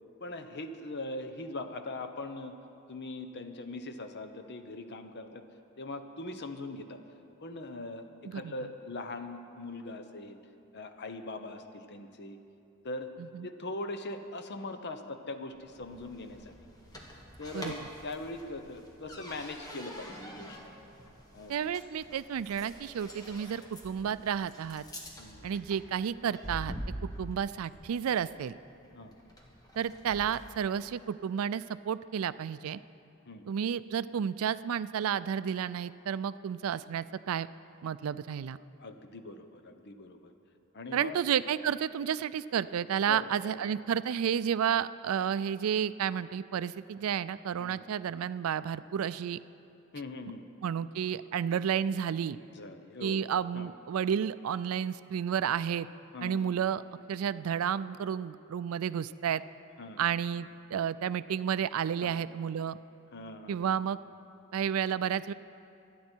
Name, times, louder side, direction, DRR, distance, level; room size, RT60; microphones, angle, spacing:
voice 1, 0.2-2.5 2.9-5.4 5.8-7.0 7.4-8.0 8.3-10.4 10.7-12.4 12.8-13.1 13.4-16.5 17.4-20.7 21.3-21.6 25.2-25.5 28.9-29.2 33.2-33.5 38.5-40.3 40.7-41.2 43.1-43.3 47.6-47.9 49.9-50.4 52.5-53.2 53.5-53.7 56.1-56.4 59.8-60.0 62.0-62.1 63.1-63.7 64.6-64.7, left 2 dB, 55° left, 8 dB, 0.9 m, -41 dB
sound 1, 15.6-30.6, equal, 20° left, 1.6 m, -46 dB
voice 2, 21.5-24.8 25.4-26.7 27.0-28.5 29.8-32.8 33.5-37.5 37.8-38.6 40.9-49.4 50.6-52.4 53.0-55.9 56.2-56.8 57.1-59.4 60.0-62.8 63.5-64.0 64.5-65.3, right 8 dB, 75° right, 16 dB, 0.4 m, -31 dB
25.0 x 9.4 x 4.5 m, 2.7 s
head